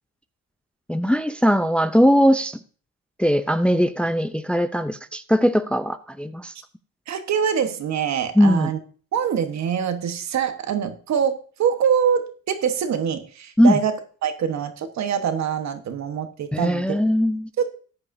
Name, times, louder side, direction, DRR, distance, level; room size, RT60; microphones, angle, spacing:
voice 1, 0.9-2.6 3.2-6.5 8.4-8.7 13.6-13.8 16.5-17.5, equal, 5° left, 0.5 m, -19 dB
voice 2, 7.1-8.8 9.1-17.0 17.6-17.7, right 7 dB, 65° right, 1.2 m, -24 dB
14.5 x 9.6 x 2.6 m
cardioid pair, 90°, 30 cm